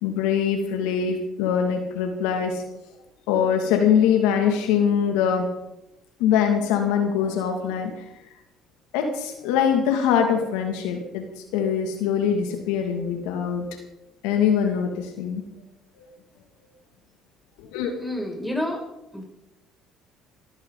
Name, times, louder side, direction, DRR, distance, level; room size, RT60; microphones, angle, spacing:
voice 1, 0.0-2.6 3.3-5.5 6.2-7.9 8.9-11.3 11.5-13.6 14.2-15.4 17.7-17.9, left 7 dB, 80° left, 4 dB, 2.5 m, -23 dB
voice 2, 18.0-18.8 19.1-19.2, left 1 dB, ahead, 0 dB, 6.6 m, -29 dB
22.0 x 15.5 x 4.1 m, 0.89 s
supercardioid pair, 70°, 0 cm